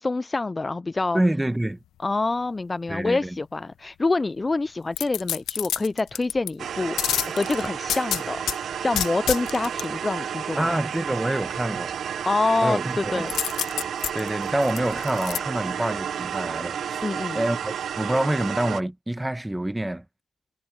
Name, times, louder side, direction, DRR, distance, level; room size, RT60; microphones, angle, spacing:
voice 1, 0.0-1.2 2.0-10.8 12.3-13.3 17.0-17.4, left 3 dB, 20° left, 0.4 m, -26 dB
voice 2, 1.1-1.8 2.9-3.4 10.6-11.9 12.6-13.2 14.1-17.0 17.3-20.0, right 1 dB, 10° right, 1.4 m, -26 dB
sound 1, 4.9-6.5 7.0-8.6 8.9-9.8 13.3-15.4 15.8-15.9, left 11 dB, 75° left, 0.8 m, -28 dB
sound 2, 6.6-18.8, right 8 dB, 60° right, 0.7 m, -31 dB
cardioid pair, 90°, 0 cm